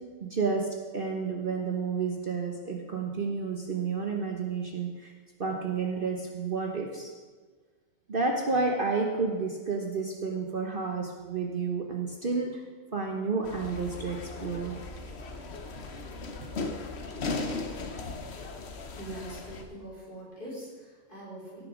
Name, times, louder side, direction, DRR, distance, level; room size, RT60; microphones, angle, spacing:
voice 1, 0.2-5.1 5.4-7.1 8.1-12.6 12.9-14.8 15.5-15.6 16.4-16.5, right 4 dB, 45° right, 1 dB, 1.0 m, -31 dB
sound 1, 13.4-19.6, left 3 dB, 55° left, 1.2 m, -37 dB
voice 2, 19.0-21.7, right 1 dB, 40° left, -6 dB, 3.8 m, -43 dB
16.0 x 6.7 x 5.0 m, 1.4 s
omnidirectional pair, 1.4 m